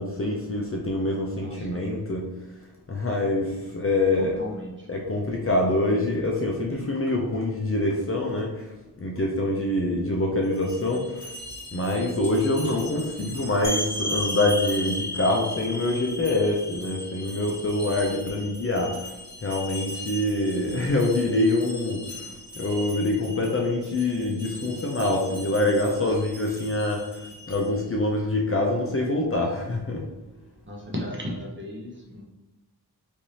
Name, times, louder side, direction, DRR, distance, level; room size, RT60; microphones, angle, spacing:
voice 1, 0.0-2.2 2.9-4.4 4.9-8.7 9.0-11.3 11.7-19.1 19.4-22.3 22.6-27.2 27.5-30.0, left 2 dB, 35° left, 0 dB, 0.5 m, -25 dB
voice 2, 1.4-1.8 3.6-3.7 4.2-4.9 30.6-32.2, equal, 30° right, -2 dB, 0.8 m, -36 dB
sound 1, 10.4-27.9, left 1 dB, 10° right, 1.4 m, -41 dB
sound 2, 13.6-19.1, left 1 dB, 65° left, 0.8 m, -33 dB
3.2 x 2.6 x 2.8 m, 1.0 s
wide cardioid pair, 85°, 41 cm